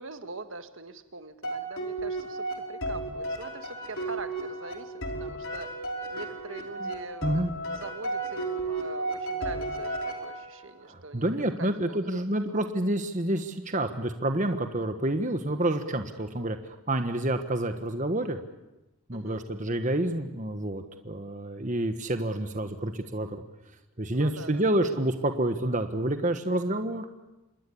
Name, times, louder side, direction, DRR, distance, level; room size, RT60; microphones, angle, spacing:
voice 1, 0.0-4.9 5.2-5.7 6.1-12.1 12.5-12.6 16.2-16.5 19.1-19.5 24.1-24.6, right 3 dB, 60° right, 9 dB, 1.7 m, -43 dB
sound 1, 1.4-10.7, right 2 dB, 65° left, 5.3 m, -34 dB
voice 2, 10.9-16.6 16.9-18.4 19.1-23.3 24.0-27.0, right 1 dB, 35° right, 7 dB, 1.4 m, -28 dB
27.0 x 21.0 x 8.6 m, 0.97 s
head